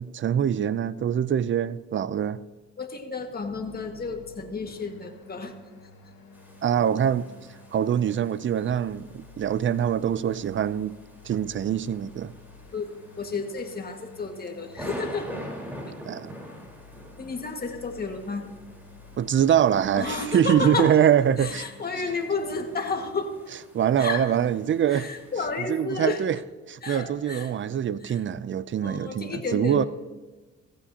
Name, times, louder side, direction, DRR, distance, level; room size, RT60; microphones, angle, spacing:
voice 1, 0.0-2.4 6.6-7.3 7.7-11.0 11.2-12.3 16.1-16.3 19.2-21.6 23.7-25.1 25.7-26.4 26.7-29.8, right 9 dB, 40° right, 0.5 m, -24 dB
voice 2, 2.8-5.5 12.7-12.9 13.2-15.3 17.2-18.5 19.9-21.0 21.4-23.3 24.0-24.3 24.9-26.2 26.8-27.5 28.0-28.2 28.8-29.9, left 4 dB, 30° left, 1.8 m, -31 dB
sound 1, 3.5-23.0, left 3 dB, 85° left, 2.7 m, -51 dB
sound 2, 6.3-25.8, equal, 5° right, 4.2 m, -45 dB
15.5 x 15.5 x 2.9 m
cardioid pair, 90°, 30 cm